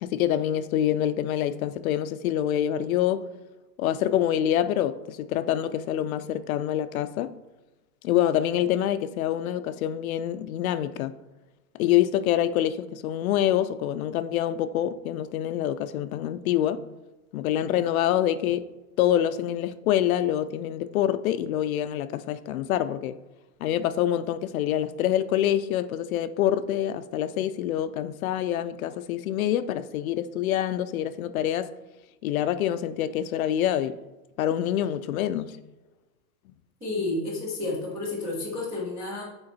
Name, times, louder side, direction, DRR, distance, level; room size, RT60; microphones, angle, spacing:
voice 1, 0.0-3.3 3.8-7.3 8.0-11.2 11.8-16.8 17.3-18.7 19.0-23.2 23.6-31.7 32.2-34.0 34.4-35.6, left 11 dB, 60° left, 0.5 m, -26 dB
voice 2, 36.8-39.2, left 2 dB, 5° right, 0.3 m, -31 dB
6.8 x 4.4 x 4.1 m
supercardioid pair, 150°, 49 cm